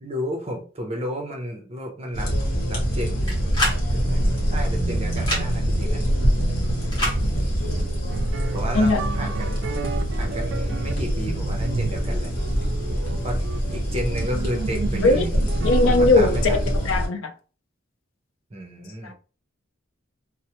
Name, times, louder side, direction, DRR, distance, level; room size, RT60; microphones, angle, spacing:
voice 1, 0.0-2.3 2.7-3.4 3.6-4.2 4.5-6.0 6.6-6.8 8.5-9.7 10.1-12.3 13.2-13.4 13.7-15.4 15.8-16.7 18.5-19.1, equal, 30° right, 0.6 m, -32 dB
sound 1, 2.1-17.1, equal, 45° left, 1.1 m, -24 dB
sound 2, 3.3-3.8 5.2-5.4 6.9-7.2, left 1 dB, 20° left, 1.2 m, -25 dB
sound 3, 7.6-16.9, right 4 dB, 65° right, 0.3 m, -34 dB
voice 2, 15.6-16.6 16.9-17.3 19.0-19.1, left 3 dB, 80° left, 0.5 m, -19 dB
3.0 x 2.0 x 2.9 m
head